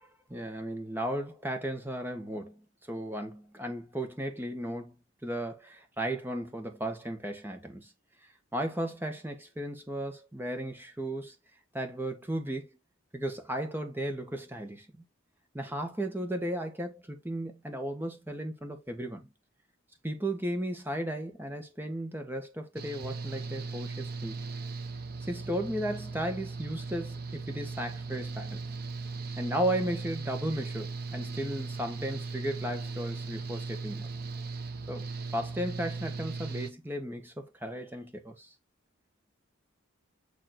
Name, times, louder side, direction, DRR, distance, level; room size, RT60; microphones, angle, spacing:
voice 1, 0.3-4.9 5.2-7.9 8.5-11.3 11.7-12.7 13.1-14.9 15.5-19.3 20.0-24.4 25.2-28.6 29.4-34.1 34.9-38.5, right 1 dB, 10° right, 1.5 m, -35 dB
Engine / Mechanical fan, 22.7-36.7, right 4 dB, 50° right, 1.0 m, -38 dB
9.1 x 3.2 x 4.4 m
head